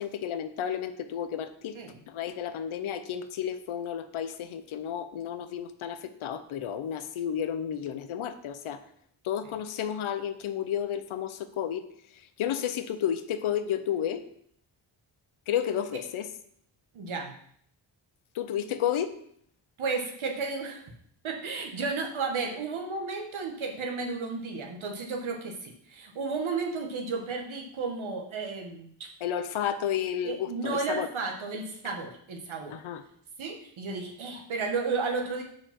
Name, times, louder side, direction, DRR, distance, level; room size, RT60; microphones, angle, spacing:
voice 1, 0.0-1.8 2.1-8.8 9.2-11.9 12.4-14.2 15.5-16.3 18.3-19.1 29.2-31.1 32.7-33.0, left 9 dB, 80° left, 10 dB, 0.8 m, -32 dB
voice 2, 16.9-17.4 19.8-20.9 21.2-29.1 30.2-32.8 33.4-35.4, right 4 dB, 75° right, 2 dB, 1.5 m, -33 dB
5.1 x 4.8 x 5.9 m, 0.66 s
cardioid pair, 65°, 48 cm